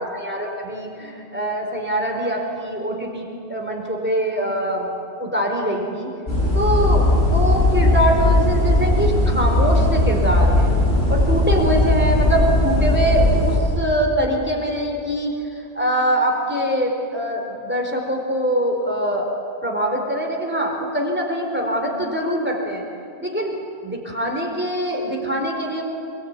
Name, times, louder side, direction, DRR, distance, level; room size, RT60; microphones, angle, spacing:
voice 1, 0.0-4.9 5.2-6.1 6.5-10.7 11.1-19.3 19.6-22.8 23.2-23.6 23.8-25.8, right 1 dB, 10° right, 0 dB, 4.2 m, -23 dB
sound 1, 6.3-13.6, left 1 dB, 75° left, 6.8 m, -18 dB
26.5 x 22.0 x 9.7 m, 2.7 s
omnidirectional pair, 1.1 m